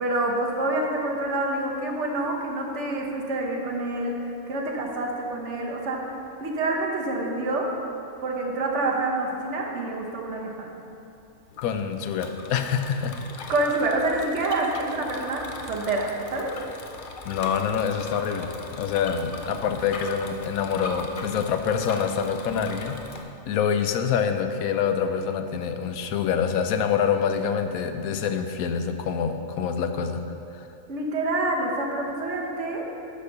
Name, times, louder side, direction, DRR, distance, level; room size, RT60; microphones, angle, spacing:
voice 1, 0.0-6.0 6.4-7.7 8.2-10.7 13.5-16.6 30.9-32.9, right 2 dB, 55° right, -1 dB, 1.4 m, -27 dB
Bicycle, 11.5-23.2, left 3 dB, 50° left, 0.7 m, -40 dB
voice 2, 11.6-13.5 17.2-23.0 23.5-30.2 30.6-30.7, left 7 dB, 90° left, 7 dB, 1.1 m, -26 dB
10.5 x 4.3 x 6.6 m, 2.7 s
omnidirectional pair, 1.4 m